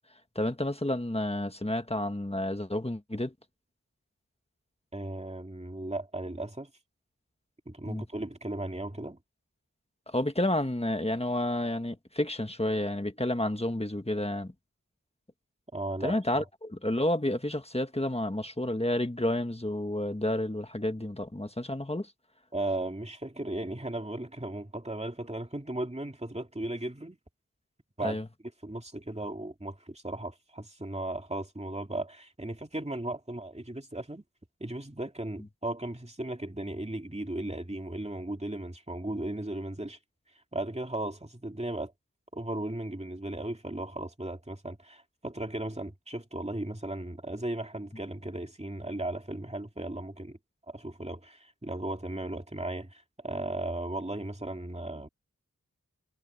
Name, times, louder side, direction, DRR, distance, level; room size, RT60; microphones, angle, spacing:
voice 1, 0.3-3.3 7.8-8.0 10.1-14.5 16.0-22.1 28.0-28.3, left 1 dB, 20° left, 1.5 m, -30 dB
voice 2, 4.9-6.7 7.7-9.2 15.7-16.2 22.5-27.2 28.0-28.2 28.6-34.2 34.6-40.0 40.5-41.9 42.3-50.4 50.7-55.1, right 1 dB, 20° right, 2.4 m, -36 dB
wide cardioid pair, 45°, 33 cm